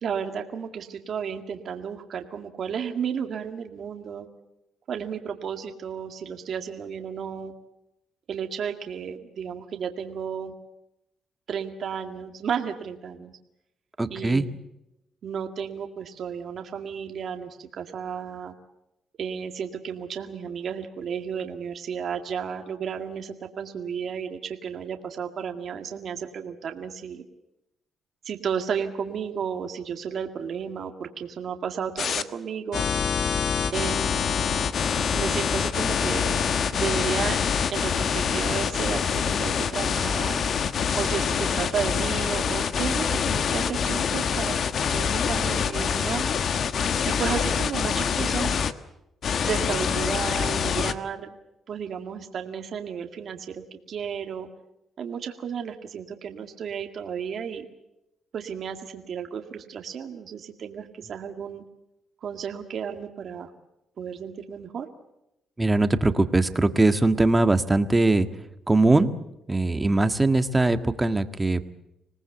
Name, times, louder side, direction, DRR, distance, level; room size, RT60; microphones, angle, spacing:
voice 1, 0.0-4.3 4.9-7.5 8.3-10.5 11.5-13.3 14.1-14.6 15.2-18.5 19.2-27.2 28.3-32.9 33.7-34.3 35.1-36.4 36.7-37.4 37.7-40.4 40.9-44.6 44.9-46.3 47.1-48.6 49.4-51.4 51.7-54.5 55.0-57.7 58.3-61.6 62.2-63.5 64.0-64.9, right 7 dB, 60° right, 5 dB, 2.0 m, -33 dB
voice 2, 14.0-14.5 65.6-68.3 68.7-69.1 69.5-71.7, right 2 dB, 15° right, 9 dB, 1.6 m, -21 dB
sound 1, 32.0-32.2 32.7-48.7 49.2-50.9, left 7 dB, 60° left, 1.3 m, -25 dB
26.0 x 19.0 x 7.9 m, 0.87 s
cardioid pair, 90°, 0 cm